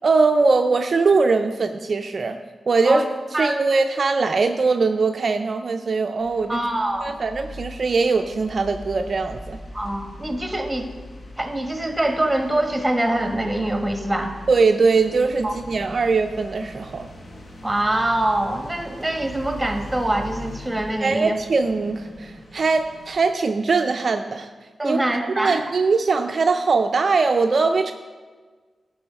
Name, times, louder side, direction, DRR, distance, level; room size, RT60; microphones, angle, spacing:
voice 1, 0.0-2.4 2.7-3.0 3.4-6.6 7.0-9.6 14.5-17.1 21.0-24.5 24.8-27.9, right 4 dB, 60° right, 6 dB, 0.5 m, -21 dB
sound 1, 6.2-23.2, left 1 dB, 50° left, 1.5 m, -41 dB
voice 2, 6.5-7.1 9.7-10.9 11.4-14.3 15.4-15.6 17.6-21.4 24.8-25.6, right 1 dB, 15° right, 5 dB, 1.6 m, -24 dB
11.0 x 4.9 x 6.3 m, 1.4 s
supercardioid pair, 45°, 0 cm